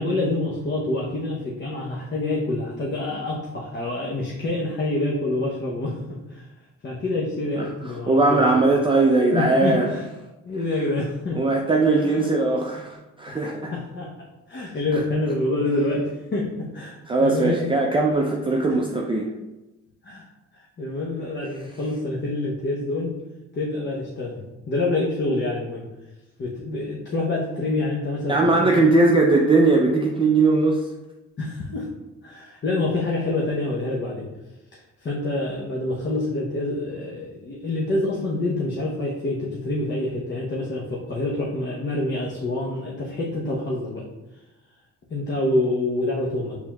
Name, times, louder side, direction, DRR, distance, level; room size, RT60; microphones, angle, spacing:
voice 1, 0.0-6.4 6.8-8.5 9.3-10.0 10.5-11.4 12.0-12.2 13.3-17.7 18.7-18.8 20.0-20.2 20.5-23.1 23.5-25.9 26.4-28.5 31.4-31.9 32.2-34.3 35.0-44.0 45.1-46.6, left 2 dB, 40° left, -4 dB, 0.8 m, -27 dB
voice 2, 8.1-9.9 11.3-13.7 14.9-15.0 17.1-19.3 28.3-30.8, right 3 dB, 15° right, 0 dB, 0.4 m, -19 dB
4.4 x 3.6 x 2.3 m, 1.0 s
cardioid pair, 90°, 30 cm